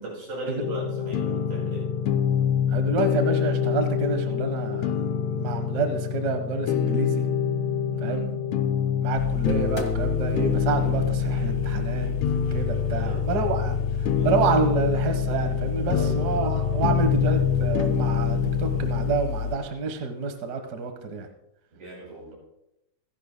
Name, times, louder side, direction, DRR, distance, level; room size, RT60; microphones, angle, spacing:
voice 1, 0.0-1.9 7.9-8.3 12.9-13.3 14.1-14.3 15.9-16.5 21.7-22.4, right 2 dB, 80° right, -2 dB, 6.7 m, -37 dB
sound 1, 0.6-19.2, left 8 dB, 75° left, 1.8 m, -26 dB
voice 2, 2.7-7.2 8.0-8.2 9.0-12.1 12.5-13.8 14.2-21.3, right 4 dB, 50° right, 6 dB, 1.3 m, -28 dB
sound 2, 9.2-19.6, left 5 dB, 60° left, 0.8 m, -30 dB
26.5 x 11.0 x 2.2 m, 0.85 s
omnidirectional pair, 3.4 m